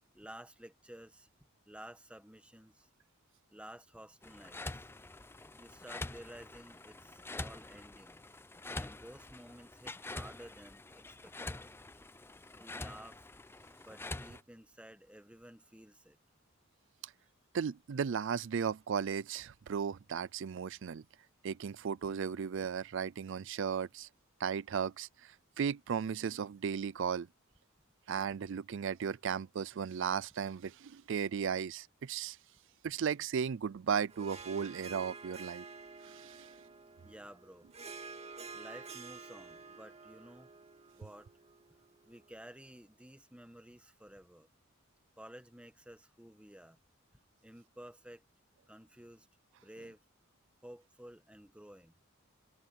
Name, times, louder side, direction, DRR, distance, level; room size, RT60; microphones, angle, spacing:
voice 1, 0.1-1.3 1.6-2.9 3.5-4.9 5.5-8.2 8.7-11.7 12.5-13.3 13.8-16.2 37.0-37.7 38.5-40.5 40.9-41.3 42.0-44.5 45.2-46.8 47.4-48.2 48.7-49.3 49.6-50.0 50.6-51.9, right 1 dB, 5° right, 1.4 m, -53 dB
sound 1, 4.2-14.4, left 2 dB, 10° left, 0.5 m, -46 dB
voice 2, 17.5-21.0 21.4-24.1 24.4-27.3 28.1-32.4 32.8-35.6 36.0-36.5, right 7 dB, 60° right, 0.4 m, -35 dB
Harp, 34.1-42.7, right 4 dB, 30° right, 1.9 m, -50 dB
head